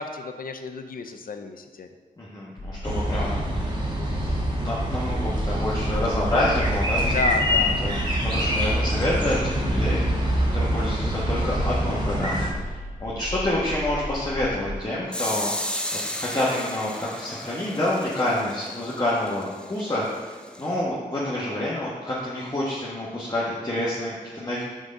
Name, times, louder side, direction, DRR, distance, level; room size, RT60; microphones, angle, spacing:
voice 1, 0.0-1.9 7.1-7.8, left 5 dB, 70° left, 7 dB, 0.5 m, -31 dB
voice 2, 2.2-3.7 4.2-7.1 7.6-8.0 8.3-15.5 16.1-20.1 20.6-24.6, left 1 dB, 25° left, -7 dB, 1.2 m, -28 dB
sound 1, 2.6-14.8, left 1 dB, 50° left, 2.0 m, -35 dB
sound 2, 2.8-12.5, equal, 30° right, 1.6 m, -25 dB
sound 3, 15.1-20.8, left 1 dB, 5° left, 0.6 m, -34 dB
6.3 x 3.7 x 5.3 m, 1.4 s
wide cardioid pair, 65°, 15 cm